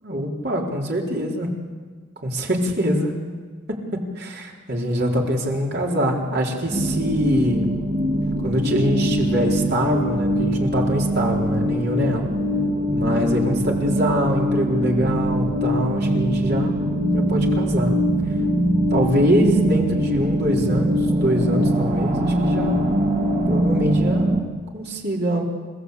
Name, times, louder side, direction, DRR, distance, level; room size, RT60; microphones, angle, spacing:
voice 1, 0.0-1.5 2.2-3.1 3.7-3.8 4.2-7.7 8.4-12.3 12.9-16.8 17.1-17.9 18.9-23.0 23.5-24.4 24.7-25.4, equal, 55° right, -1 dB, 4.1 m, -23 dB
sound 1, 6.7-24.4, right 1 dB, 35° right, 2.3 m, -22 dB
29.5 x 16.5 x 8.4 m, 1.5 s
head